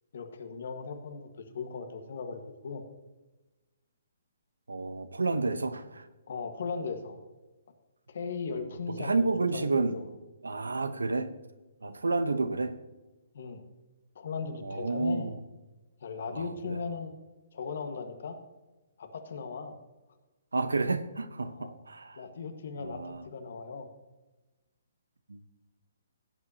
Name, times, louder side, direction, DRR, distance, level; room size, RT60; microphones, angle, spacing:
voice 1, 0.1-2.8 6.3-7.2 8.1-10.1 11.8-12.0 13.3-13.6 14.1-15.3 16.0-17.1 17.5-18.4 19.0-19.8 21.5-21.7 22.1-23.9, left 5 dB, 60° left, 7 dB, 1.5 m, -38 dB
voice 2, 4.7-6.1 8.9-10.0 10.4-11.3 11.8-12.8 14.6-15.4 16.3-16.8 20.5-22.3 22.8-23.2 25.3-25.4, right 3 dB, 85° right, 12 dB, 0.9 m, -30 dB
17.0 x 8.3 x 2.9 m, 1.1 s
figure-of-eight pair, 135°, 0 cm